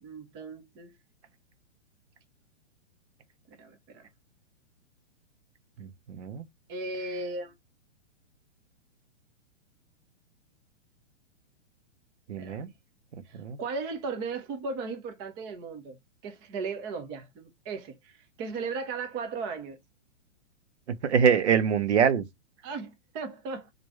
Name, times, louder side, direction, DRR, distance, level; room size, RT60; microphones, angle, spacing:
voice 1, 0.0-0.9 3.6-4.0 6.7-7.5 12.4-12.6 13.3-16.0 16.2-19.8 22.6-23.7, right 4 dB, 15° right, 0.3 m, -36 dB
voice 2, 5.8-6.4 12.3-12.7 13.3-13.6 20.9-22.3, right 7 dB, 70° right, 1.0 m, -25 dB
4.6 x 2.6 x 4.2 m
hypercardioid pair, 130°, 36 cm